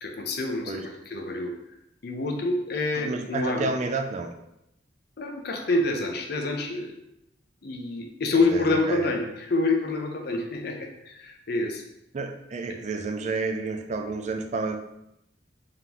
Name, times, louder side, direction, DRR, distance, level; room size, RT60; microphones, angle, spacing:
voice 1, 0.0-1.5 2.0-3.7 5.2-6.9 7.6-11.8 12.7-12.8, left 2 dB, 55° left, 3 dB, 0.6 m, -27 dB
voice 2, 2.9-4.3 8.5-9.1 12.1-14.8, right 3 dB, 35° right, 4 dB, 0.4 m, -30 dB
3.7 x 3.5 x 2.9 m, 0.82 s
head